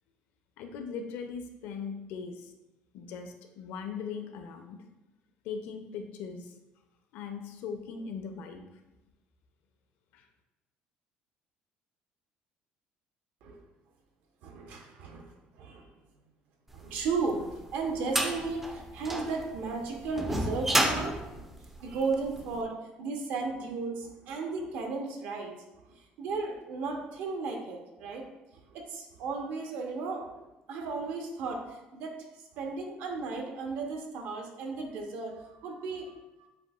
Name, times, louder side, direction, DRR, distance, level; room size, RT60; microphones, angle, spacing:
voice 1, 0.6-2.5 2.9-4.8 5.4-6.5 7.1-8.6 10.1-10.2, left 5 dB, 75° left, 6 dB, 0.5 m, -39 dB
voice 2, 14.4-15.9 16.7-21.5 21.8-28.3 28.5-30.3 30.7-36.5, right 4 dB, 70° right, 3 dB, 0.7 m, -35 dB
sound 1, 17.1-22.4, right 1 dB, 5° right, 0.3 m, -31 dB
7.6 x 2.6 x 2.3 m, 1.0 s
cardioid pair, 165°, 3 cm